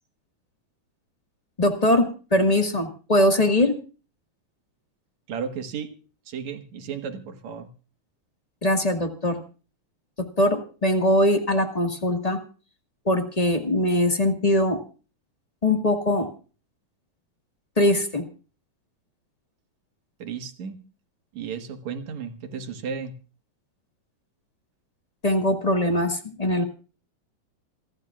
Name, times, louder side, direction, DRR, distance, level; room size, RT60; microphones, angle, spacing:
voice 1, 1.6-3.8 8.6-9.4 10.4-12.4 13.0-14.8 15.6-16.3 17.8-18.2 25.2-26.6, left 1 dB, 20° left, 5 dB, 1.1 m, -21 dB
voice 2, 5.3-5.9 6.3-7.7 20.2-20.9 21.3-23.2, right 6 dB, 70° right, 6 dB, 2.8 m, -34 dB
27.5 x 12.0 x 2.4 m, 0.36 s
omnidirectional pair, 3.4 m